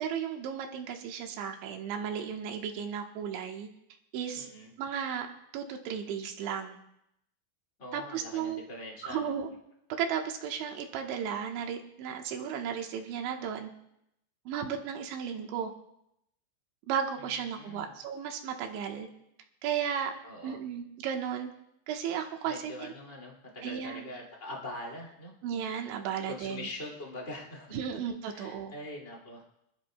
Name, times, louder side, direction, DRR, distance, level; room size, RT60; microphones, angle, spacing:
voice 1, 0.0-3.7 4.1-4.5 4.8-5.3 5.5-6.8 7.9-8.6 9.0-9.5 9.9-13.7 14.5-15.7 16.9-19.1 19.6-20.1 20.4-21.5 21.9-22.9 23.6-24.1 25.4-26.7 27.7-28.7, right 8 dB, 75° right, 3 dB, 3.2 m, -34 dB
voice 2, 4.3-4.7 7.8-9.3 17.2-17.9 20.2-20.6 22.4-25.3 26.3-27.8 28.3-29.4, left 1 dB, 65° left, -2 dB, 0.7 m, -43 dB
26.5 x 12.5 x 2.2 m, 0.79 s
omnidirectional pair, 5.8 m